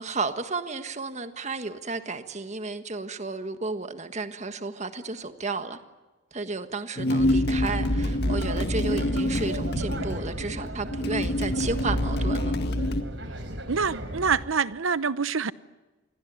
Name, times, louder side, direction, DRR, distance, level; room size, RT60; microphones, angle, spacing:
voice 1, 0.0-5.8 6.3-12.5, right 3 dB, 35° right, 1.6 m, -32 dB
sound 1, 7.0-13.0, left 1 dB, 55° left, 1.9 m, -26 dB
sound 2, 7.5-14.5, right 1 dB, 65° right, 3.9 m, -36 dB
voice 2, 13.7-15.5, right 5 dB, 90° right, 0.9 m, -26 dB
27.5 x 21.5 x 9.4 m
head